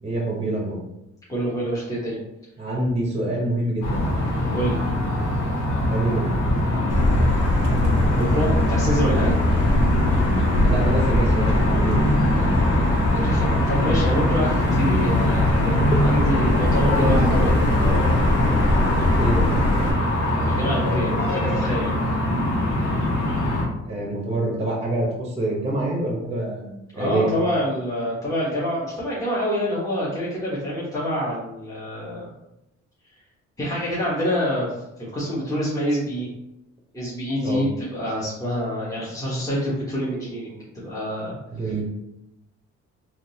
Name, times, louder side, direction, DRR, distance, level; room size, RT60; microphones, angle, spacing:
voice 1, 0.0-0.8 2.6-4.1 5.9-6.3 9.5-9.7 10.6-12.2 15.9-16.0 19.2-19.5 23.9-27.3 37.4-37.6 41.5-41.8, right 1 dB, 20° right, -1 dB, 0.9 m, -26 dB
voice 2, 1.3-2.2 4.5-4.8 8.1-9.4 13.1-17.5 20.5-22.0 26.9-32.3 33.6-34.7 35.1-36.3 36.9-40.6 40.8-41.7, equal, 10° left, -8 dB, 1.1 m, -26 dB
sound 1, 3.8-23.6, left 1 dB, 85° left, 1.3 m, -23 dB
Motor vehicle (road), 6.9-19.9, left 1 dB, 50° left, 0.9 m, -22 dB
3.7 x 2.6 x 2.8 m, 0.88 s
cardioid pair, 90°, 30 cm